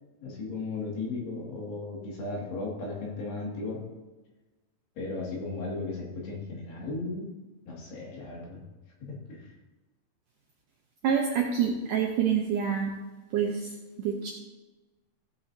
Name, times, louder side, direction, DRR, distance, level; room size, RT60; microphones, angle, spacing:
voice 1, 0.2-3.8 5.0-7.3 7.7-8.6 9.0-9.5, left 3 dB, 75° left, -4 dB, 4.5 m, -36 dB
voice 2, 11.0-12.9 13.3-13.7 14.0-14.3, right 7 dB, 75° right, 0 dB, 1.9 m, -27 dB
15.5 x 8.7 x 2.8 m, 1.2 s
omnidirectional pair, 4.8 m